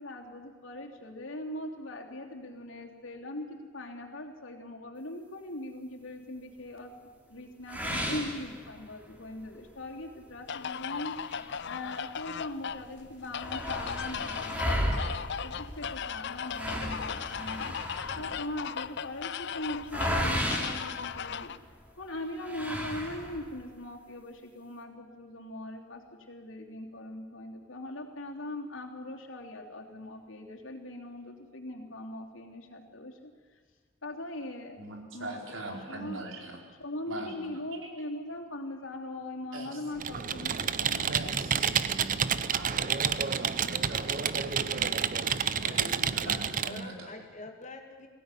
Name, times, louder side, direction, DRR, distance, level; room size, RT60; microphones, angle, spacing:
voice 1, 0.0-6.9 7.3-11.2 11.7-15.2 15.4-17.7 18.2-21.5 22.0-26.0 26.3-33.3 34.0-34.8 35.1-36.2 36.8-41.1, left 1 dB, 90° left, 1 dB, 3.3 m, -40 dB
sound 1, 7.7-9.1 9.6-9.7 10.1-10.2 11.0-12.4 12.7-12.8 13.0-21.7 22.4-23.6, equal, 10° right, 3.8 m, -34 dB
sound 2, 10.5-21.6, left 7 dB, 60° left, 0.6 m, -37 dB
voice 2, 34.8-36.6 37.1-37.9 39.5-39.8 41.0-42.2 42.5-44.5 45.6-47.1, right 2 dB, 90° right, 1 dB, 4.7 m, -42 dB
Computer keyboard, 40.0-46.8, right 7 dB, 45° right, 0.7 m, -29 dB
voice 3, 44.3-45.0 45.7-46.0 46.2-48.1, left 2 dB, 40° left, 4 dB, 2.2 m, -45 dB
22.0 x 17.0 x 9.9 m, 1.5 s
head